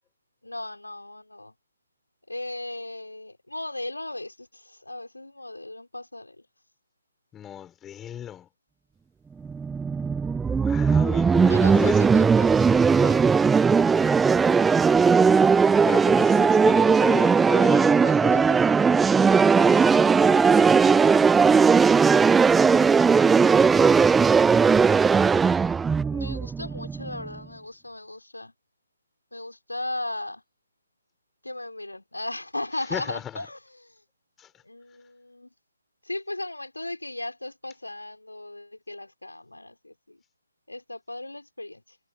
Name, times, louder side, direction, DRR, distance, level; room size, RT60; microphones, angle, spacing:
voice 1, 0.4-1.5 2.3-6.5 11.5-13.3 17.9-18.7 26.1-28.5 29.3-30.4 31.4-34.0 34.6-35.5 36.0-40.2 40.7-42.0, left 2 dB, 80° left, 4.3 m, -37 dB
voice 2, 7.3-8.5 10.4-12.0 13.9-14.8 15.8-18.5 19.6-21.4 32.9-33.5 34.4-34.5, left 10 dB, 10° left, 6.6 m, -35 dB
sound 1, 9.4-27.3, right 5 dB, 5° right, 0.6 m, -18 dB
figure-of-eight pair, 140°, 0 cm